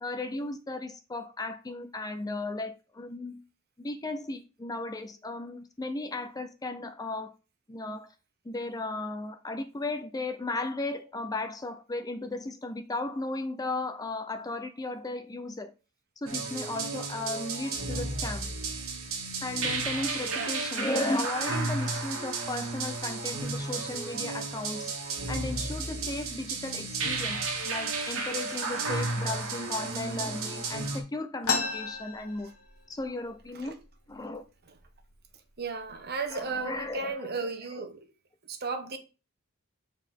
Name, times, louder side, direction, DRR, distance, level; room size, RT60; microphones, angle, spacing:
voice 1, 0.0-3.4 3.8-7.3 7.7-8.1 8.4-15.7 16.2-18.5 19.4-24.9 25.3-32.5 32.9-33.8 34.1-34.4 36.3-37.5 37.7-37.9, left 2 dB, 15° left, 0.5 m, -35 dB
sound 1, 16.3-31.0, right 3 dB, 65° right, 1.6 m, -33 dB
voice 2, 20.3-20.6 33.5-33.7 35.6-38.0 38.5-39.0, right 4 dB, 45° right, 1.0 m, -35 dB
sound 2, 31.4-33.0 33.4-33.5 33.7-34.4 35.0-35.1 35.8-36.0 36.5-36.9, left 5 dB, 70° left, 1.3 m, -32 dB
7.2 x 4.2 x 3.6 m
head